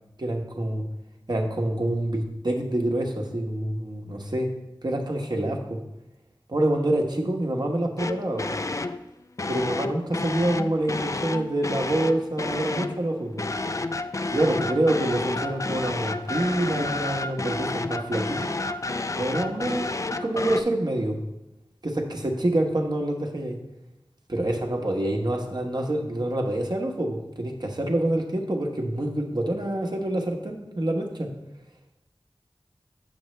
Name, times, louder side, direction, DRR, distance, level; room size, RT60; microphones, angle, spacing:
voice 1, 0.2-0.8 1.3-4.5 4.8-5.8 6.5-8.5 9.5-13.4 14.3-18.6 19.2-19.9 20.2-21.2 21.8-23.6 24.3-31.3, right 1 dB, 50° right, 2 dB, 1.1 m, -26 dB
sound 1, 8.0-9.0 9.4-13.0 13.4-20.6, left 2 dB, 35° left, 0.4 m, -30 dB
7.9 x 7.0 x 3.2 m, 0.92 s
wide cardioid pair, 50°, 9 cm